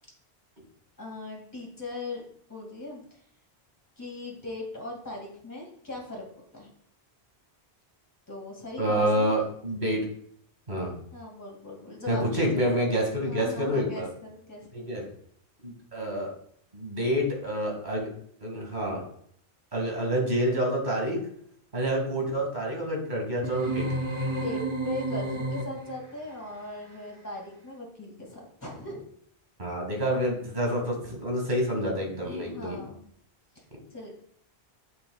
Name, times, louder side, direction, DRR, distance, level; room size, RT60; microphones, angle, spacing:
voice 1, 1.0-2.2 2.5-3.2 4.0-6.2 6.5-6.7 8.3-9.3 11.1-12.4 13.2-14.9 24.3-29.1 32.2-33.1 33.6-33.7 33.9-34.1, left 2 dB, 15° left, -2 dB, 2.2 m, -39 dB
voice 2, 8.8-10.1 10.7-10.9 12.1-14.1 14.7-15.0 15.6-16.3 16.7-18.1 18.4-19.0 19.7-21.3 21.7-23.9 29.6-32.8, equal, 45° right, 0 dB, 2.3 m, -28 dB
sound 1, 23.4-26.1, right 2 dB, 30° right, 1.2 m, -31 dB
8.6 x 7.3 x 2.3 m, 0.66 s
omnidirectional pair, 1.1 m